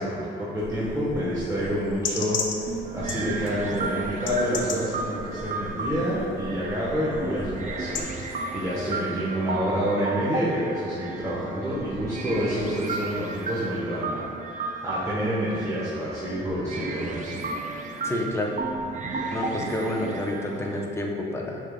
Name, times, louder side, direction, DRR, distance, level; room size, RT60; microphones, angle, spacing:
voice 1, 0.0-8.0 8.5-14.3 14.8-17.5, equal, 15° right, -9 dB, 1.0 m, -28 dB
sound 1, 0.6-8.0, left 4 dB, 70° left, 0.5 m, -36 dB
sound 2, 2.7-20.8, right 3 dB, 40° right, 0.5 m, -34 dB
voice 2, 18.0-18.5 19.3-21.6, left 1 dB, 15° left, 0 dB, 0.6 m, -29 dB
6.3 x 3.7 x 2.2 m, 2.4 s
cardioid pair, 90°, 20 cm